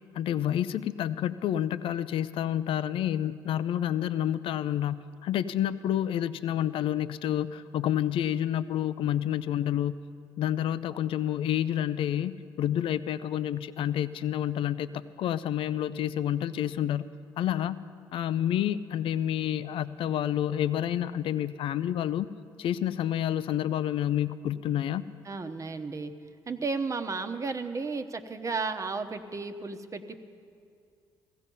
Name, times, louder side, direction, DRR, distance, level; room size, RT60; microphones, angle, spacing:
voice 1, 0.1-10.0 10.4-17.1 17.4-17.8 18.1-22.3 22.6-25.1, left 11 dB, 65° left, 14 dB, 0.5 m, -29 dB
voice 2, 25.2-26.1 26.5-30.2, right 4 dB, 35° right, 7 dB, 1.1 m, -33 dB
16.0 x 15.5 x 5.4 m, 2.4 s
supercardioid pair, 65°, 10 cm